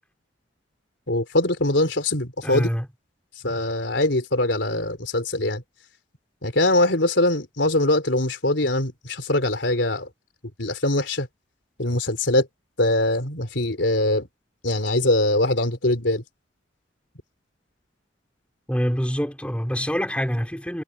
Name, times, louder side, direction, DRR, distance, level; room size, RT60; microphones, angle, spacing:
voice 1, 1.1-2.7 3.4-5.6 6.4-10.1 10.6-11.3 11.8-12.5 12.8-14.3 14.6-16.2, left 1 dB, 70° left, 3.8 m, -22 dB
voice 2, 2.4-2.9 18.7-20.8, equal, 5° left, 3.8 m, -25 dB
head